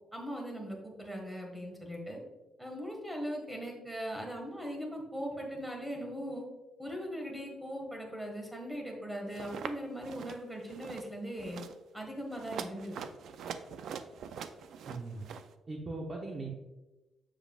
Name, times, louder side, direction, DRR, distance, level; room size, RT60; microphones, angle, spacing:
voice 1, 0.1-2.2 2.6-6.5 6.8-11.6 11.9-13.0, equal, 5° right, 1 dB, 1.7 m, -39 dB
sound 1, 9.3-9.7 10.0-10.4 10.7-11.1 11.4-11.7 12.3-15.5, right 7 dB, 75° right, 0.4 m, -43 dB
voice 2, 14.8-15.2 15.7-16.5, right 2 dB, 30° right, -1 dB, 0.9 m, -39 dB
7.3 x 7.0 x 2.4 m, 1.1 s
cardioid pair, 115°, 0 cm